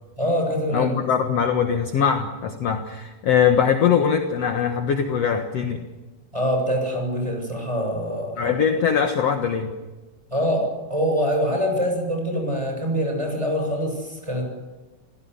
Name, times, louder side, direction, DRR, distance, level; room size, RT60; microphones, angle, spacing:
voice 1, 0.2-0.9 6.3-8.6 10.3-14.4, equal, 5° right, 2 dB, 7.2 m, -24 dB
voice 2, 0.7-5.9 8.4-9.7, left 7 dB, 60° left, 5 dB, 1.7 m, -21 dB
29.5 x 17.0 x 9.7 m, 1.2 s
omnidirectional pair, 4.8 m